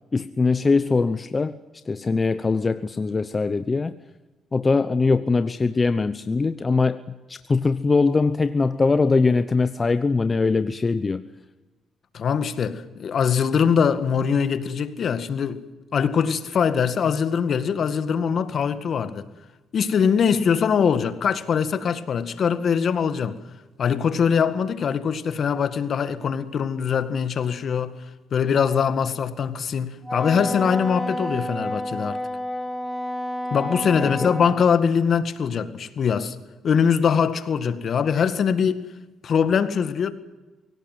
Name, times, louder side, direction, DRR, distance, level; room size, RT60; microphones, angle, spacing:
voice 1, 0.1-1.6 1.9-3.9 4.5-7.0 7.3-11.2 34.0-34.3, left 4 dB, 30° left, 0.9 m, -22 dB
voice 2, 12.1-15.6 15.9-19.2 19.7-23.4 23.8-28.0 28.3-32.2 33.5-36.4 36.6-38.8 39.2-40.1, left 7 dB, 55° left, 1.9 m, -22 dB
Wind instrument woodwind instrument, 30.0-34.6, equal, ahead, 2.4 m, -30 dB
23.5 x 17.5 x 9.4 m
cardioid pair, 90°, 0 cm